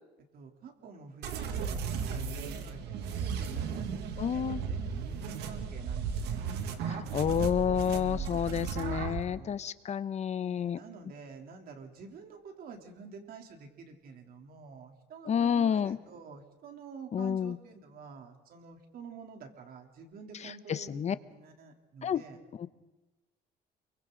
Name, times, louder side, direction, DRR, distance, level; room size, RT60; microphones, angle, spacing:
voice 1, 0.3-6.5 7.0-7.6 7.8-8.4 9.2-9.6 10.3-22.4, right 5 dB, 60° right, 3 dB, 3.4 m, -48 dB
sound 1, 1.2-9.2, right 6 dB, 85° right, 2.1 m, -35 dB
voice 2, 4.2-4.6 6.9-10.8 15.3-16.0 17.1-17.5 20.7-21.1 22.0-22.2 22.6-22.7, left 8 dB, 40° left, 15 dB, 0.9 m, -29 dB
29.0 x 23.5 x 4.0 m, 1.1 s
cardioid pair, 110°, 17 cm